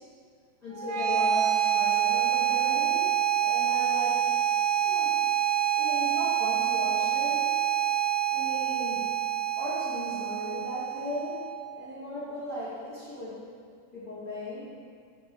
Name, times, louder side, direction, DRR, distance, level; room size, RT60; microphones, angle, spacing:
voice 1, 0.6-4.3 4.8-5.1 5.7-7.4 8.3-9.1 9.6-11.4 11.7-13.4 13.9-14.7, left 1 dB, 80° left, -13 dB, 0.8 m, -37 dB
sound 1, 0.7-11.7, right 10 dB, 80° right, 2.0 m, -27 dB
7.1 x 3.7 x 5.0 m, 2.2 s
omnidirectional pair, 4.2 m